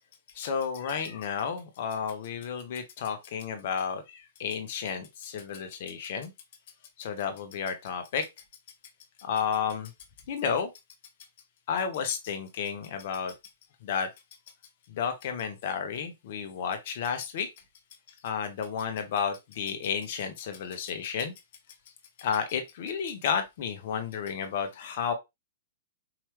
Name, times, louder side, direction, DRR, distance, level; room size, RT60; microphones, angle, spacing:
voice 1, 0.3-6.3 7.0-8.3 9.2-9.9 10.3-10.7 11.7-13.3 13.8-14.1 14.9-17.5 18.2-21.3 22.2-25.1, left 7 dB, 50° left, 1.2 m, -32 dB
4.9 x 3.1 x 3.2 m
figure-of-eight pair, 110°, 0 cm